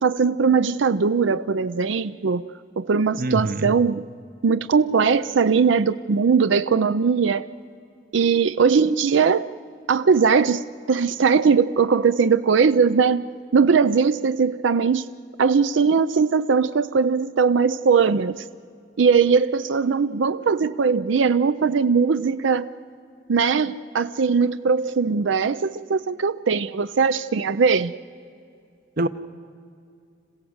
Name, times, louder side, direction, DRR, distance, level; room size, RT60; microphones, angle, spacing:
voice 1, 0.0-2.5 2.8-4.0 4.4-7.5 8.1-9.5 9.9-15.1 15.4-18.4 19.0-22.7 23.3-27.9, right 5 dB, 90° right, 13 dB, 0.5 m, -20 dB
voice 2, 3.2-3.7 29.0-29.1, right 2 dB, 50° right, 13 dB, 0.8 m, -24 dB
26.5 x 16.0 x 7.9 m, 2.4 s
head